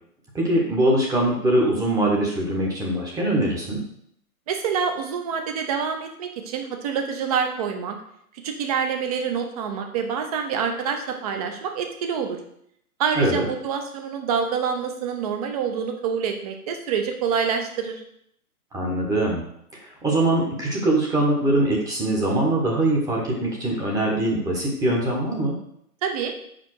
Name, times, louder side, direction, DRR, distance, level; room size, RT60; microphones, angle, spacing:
voice 1, 0.3-3.8 13.1-13.5 18.7-19.4 19.8-25.5, right 1 dB, 10° right, -3 dB, 1.1 m, -22 dB
voice 2, 4.5-8.0 8.4-12.4 13.0-18.0 26.0-26.3, right 6 dB, 25° right, 5 dB, 0.8 m, -26 dB
5.0 x 5.0 x 6.4 m, 0.71 s
hypercardioid pair, 150°, 45 cm